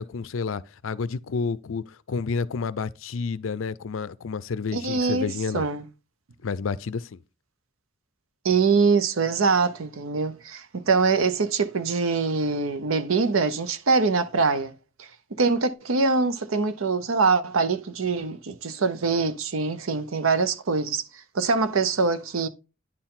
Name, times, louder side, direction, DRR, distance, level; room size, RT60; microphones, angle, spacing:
voice 1, 0.0-5.7 6.4-7.2, left 5 dB, 75° left, 0.5 m, -30 dB
voice 2, 4.7-5.8 8.4-14.7 15.0-15.1 15.4-21.0 21.3-22.5, right 4 dB, 85° right, 0.7 m, -23 dB
9.8 x 4.5 x 3.7 m
head